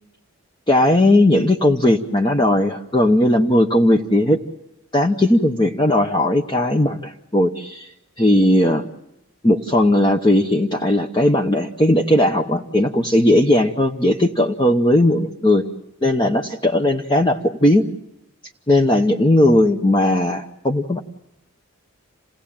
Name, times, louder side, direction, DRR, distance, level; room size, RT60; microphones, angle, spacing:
voice 1, 0.7-4.4 4.9-7.9 8.2-8.8 9.4-15.6 16.0-17.8 18.7-21.0, left 1 dB, 20° left, 2 dB, 0.9 m, -17 dB
28.0 x 18.0 x 8.8 m, 0.88 s
head